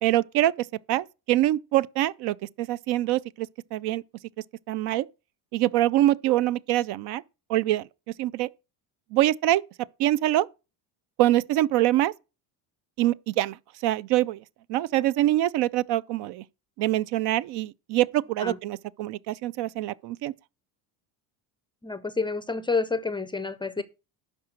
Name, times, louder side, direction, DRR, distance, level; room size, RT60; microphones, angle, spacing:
voice 1, 0.0-4.0 4.7-5.1 5.5-7.2 7.5-7.8 8.2-8.5 9.1-9.6 10.0-10.5 11.2-12.1 13.0-13.6 13.8-14.4 14.7-16.4 16.8-20.3, right 14 dB, 60° right, 0.6 m, -24 dB
voice 2, 21.8-23.8, left 4 dB, 10° left, 0.5 m, -29 dB
11.5 x 4.8 x 6.4 m
cardioid pair, 135°, 46 cm